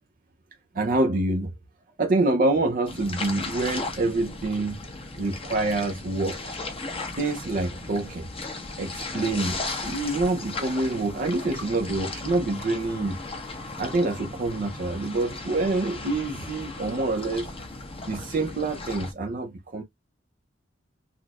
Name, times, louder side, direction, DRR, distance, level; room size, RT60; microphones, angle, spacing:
voice 1, 0.7-1.5 2.0-4.8 5.1-6.6 7.2-8.3 8.8-13.2 13.8-17.5 18.1-19.8, right 2 dB, 50° right, 0.6 m, -26 dB
sound 1, 2.9-19.1, left 3 dB, 30° left, 1.1 m, -36 dB
5.8 x 2.4 x 2.3 m
head